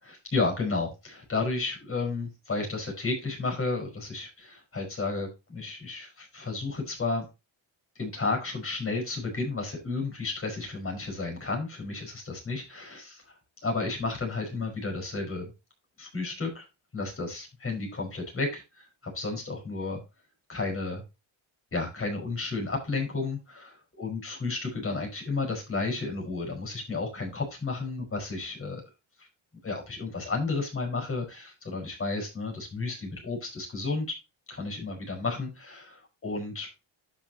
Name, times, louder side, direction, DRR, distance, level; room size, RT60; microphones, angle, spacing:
voice 1, 0.0-7.2 8.0-13.4 13.6-15.5 16.0-16.7 16.9-18.9 19.1-20.0 20.5-21.0 21.7-28.8 29.6-34.1 34.5-36.7, left 3 dB, 25° left, 1 dB, 5.2 m, -32 dB
11.5 x 6.2 x 2.9 m, 0.25 s
cardioid pair, 155°, 49 cm